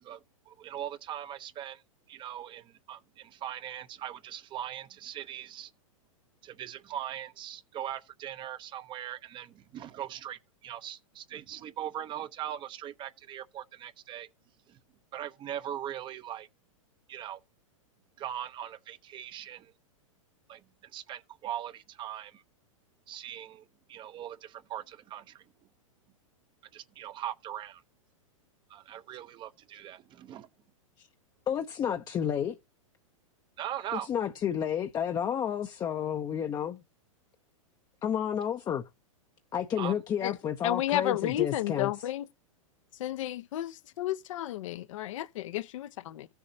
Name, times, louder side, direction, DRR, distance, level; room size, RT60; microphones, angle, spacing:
voice 1, 0.0-1.8 2.1-5.7 6.4-14.3 14.7-14.8 15.1-16.5 17.1-17.4 18.2-19.7 20.5-22.4 23.1-25.4 26.7-27.8 28.7-30.5 33.6-34.1 39.8-39.9, right 11 dB, 25° right, 0.8 m, -40 dB
voice 2, 31.5-32.6 33.9-36.8 38.0-38.9 39.5-41.9, left 8 dB, 20° left, 0.7 m, -31 dB
voice 3, 40.6-42.3 43.0-46.3, left 13 dB, 65° left, 0.8 m, -32 dB
15.5 x 7.0 x 2.7 m
hypercardioid pair, 120°, 18 cm